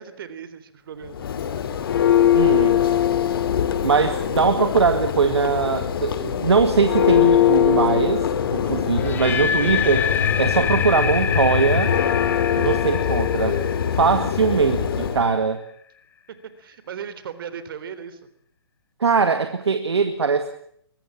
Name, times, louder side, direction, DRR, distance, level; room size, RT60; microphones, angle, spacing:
voice 1, 0.0-1.6 8.6-8.9 16.6-18.2, right 7 dB, 55° right, 13 dB, 3.5 m, -37 dB
Church bell, 1.0-15.3, left 9 dB, 60° left, 2.5 m, -22 dB
voice 2, 2.3-2.8 3.8-8.3 8.5-10.1 10.4-11.9 12.6-13.6 13.9-15.6 19.0-20.5, right 5 dB, 80° right, 9 dB, 2.1 m, -21 dB
sound 1, 9.0-15.0, left 8 dB, 15° left, 1.3 m, -27 dB
23.5 x 20.0 x 7.3 m, 0.67 s
hypercardioid pair, 135°, 14 cm